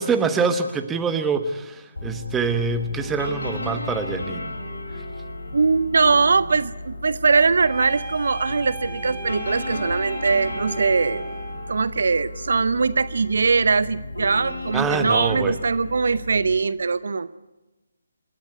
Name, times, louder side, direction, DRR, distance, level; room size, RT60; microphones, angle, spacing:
voice 1, 0.0-4.5 14.7-15.6, right 4 dB, 10° right, 8 dB, 1.3 m, -25 dB
sound 1, 2.0-16.6, left 2 dB, 75° left, 5.9 m, -34 dB
voice 2, 5.5-11.3 11.7-17.3, right 4 dB, 60° right, 16 dB, 0.8 m, -21 dB
sound 2, 7.6-11.8, right 2 dB, 25° left, 5.2 m, -37 dB
28.0 x 13.0 x 9.6 m, 1.1 s
figure-of-eight pair, 150°, 0 cm